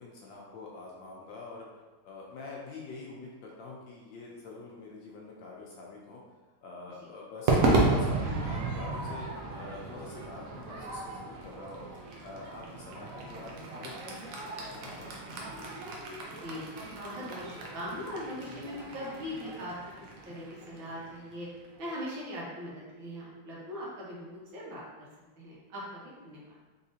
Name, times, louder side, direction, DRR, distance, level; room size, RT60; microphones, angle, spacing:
voice 1, 0.0-1.7 2.0-6.2 6.6-9.3 9.6-15.5, left 3 dB, 70° left, -3 dB, 1.2 m, -45 dB
Crowd / Fireworks, 7.5-21.9, right 3 dB, 85° right, 0.7 m, -33 dB
voice 2, 17.0-19.7 20.3-21.5 21.8-25.1 25.4-26.4, left 1 dB, 70° right, -6 dB, 1.9 m, -40 dB
4.1 x 3.7 x 2.8 m, 1.2 s
omnidirectional pair, 2.3 m